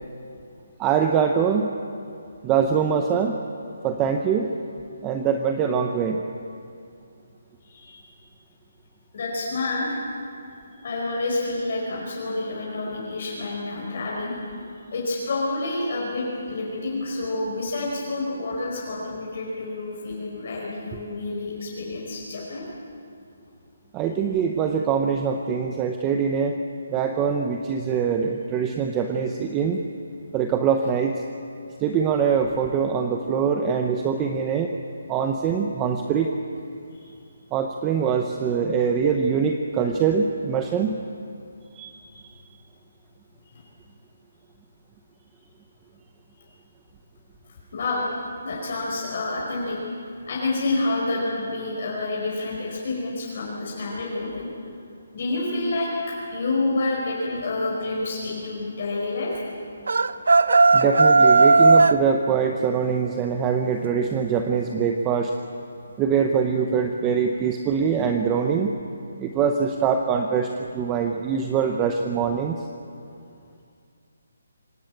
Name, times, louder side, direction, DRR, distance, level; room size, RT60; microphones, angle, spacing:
voice 1, 0.8-1.7 2.4-3.4 3.8-4.5 5.0-6.2 23.9-26.6 26.9-29.8 30.3-31.1 31.8-34.7 35.1-36.3 37.5-41.0 41.7-42.3 60.7-65.3 66.0-68.7 69.2-72.6, right 6 dB, 10° right, 5 dB, 0.7 m, -23 dB
voice 2, 7.6-8.0 9.1-10.0 10.8-14.3 14.9-22.6 36.9-37.1 43.5-43.7 47.7-48.1 48.4-49.8 50.3-54.5 55.1-55.9 56.3-59.4, left 2 dB, 40° left, -4 dB, 4.9 m, -28 dB
sound 1, 59.9-62.0, right 3 dB, 70° right, 0.9 m, -15 dB
26.0 x 17.0 x 8.8 m, 2.4 s
hypercardioid pair, 175°, 0 cm